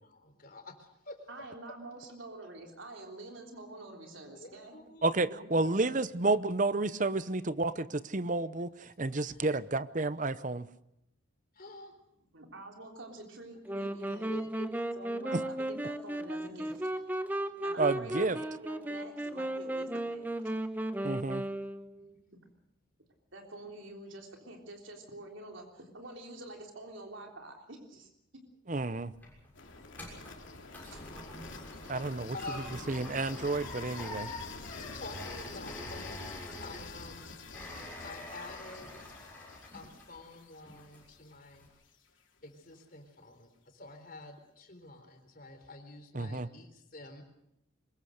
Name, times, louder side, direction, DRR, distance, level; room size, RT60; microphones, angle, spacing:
voice 1, 0.0-1.2 4.4-5.2 8.5-8.6 9.1-9.4 11.5-11.9 13.8-14.7 21.9-22.1 31.9-32.8 34.9-36.2 36.6-37.3 38.0-39.1 39.7-41.7 42.4-47.2, left 2 dB, 45° left, 6 dB, 3.7 m, -48 dB
voice 2, 1.3-4.8 5.3-5.9 12.3-14.4 15.0-16.9 17.6-20.5 23.3-28.1 30.9-31.0 35.5-35.8, right 2 dB, 70° right, 2 dB, 3.6 m, -47 dB
voice 3, 5.0-10.7 15.3-15.4 17.8-18.4 21.0-21.4 28.7-29.1 31.9-32.3 32.9-34.3 46.1-46.5, right 3 dB, 40° right, 15 dB, 0.8 m, -30 dB
sound 1, 13.7-22.1, right 1 dB, 10° right, 0.9 m, -35 dB
sound 2, 28.8-40.3 40.7-41.2 41.6-41.7, left 2 dB, 10° left, 6.7 m, -46 dB
sound 3, 29.5-41.5, left 3 dB, 70° left, 3.3 m, -47 dB
23.5 x 21.0 x 6.5 m, 0.80 s
head